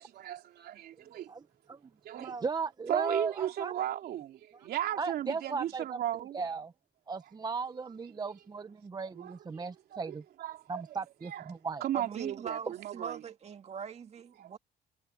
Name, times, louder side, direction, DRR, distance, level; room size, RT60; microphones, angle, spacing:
voice 1, 0.0-1.3 2.0-2.3 2.9-6.4 9.1-9.6 9.9-10.8 11.2-11.4 11.8-13.2 14.4-14.6, right 12 dB, 65° right, 3.3 m, -36 dB
voice 2, 2.2-3.7 5.0-6.0 6.3-6.7 7.1-10.2 10.7-11.8, right 5 dB, 25° right, 0.9 m, -36 dB
voice 3, 11.9-14.6, right 6 dB, 40° right, 2.0 m, -41 dB
cardioid pair, 110°, 17 cm